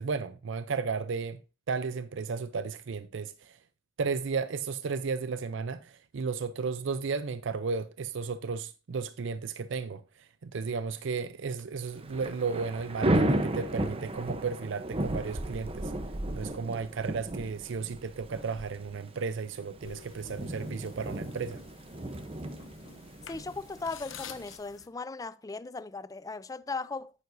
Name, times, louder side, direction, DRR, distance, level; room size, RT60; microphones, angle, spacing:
voice 1, 0.0-1.4 1.7-3.6 4.0-15.9 16.3-21.6, right 5 dB, 65° right, 0.5 m, -34 dB
Thunder / Rain, 11.9-24.6, right 1 dB, 30° right, 0.7 m, -34 dB
sound 1, 19.8-24.9, left 7 dB, 70° left, 0.9 m, -49 dB
voice 2, 23.3-27.1, left 3 dB, 15° left, 0.4 m, -37 dB
9.4 x 9.3 x 2.6 m
head